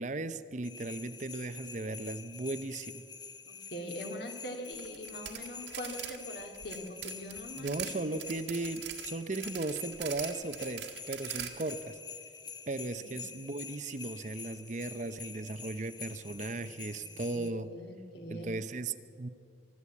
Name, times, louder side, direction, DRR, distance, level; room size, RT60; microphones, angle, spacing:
voice 1, 0.0-3.0 7.6-12.0 12.7-17.7 18.3-19.3, right 2 dB, 40° right, 12 dB, 0.7 m, -37 dB
sound 1, 0.6-17.5, left 6 dB, 25° left, 0.8 m, -47 dB
voice 2, 3.5-8.2 13.0-13.1 17.0-18.5, equal, 60° left, 3 dB, 2.5 m, -43 dB
sound 2, 4.7-6.2 6.4-7.9 8.2-11.7, right 11 dB, 80° right, 1.8 m, -42 dB
24.5 x 12.5 x 8.4 m, 2.4 s
head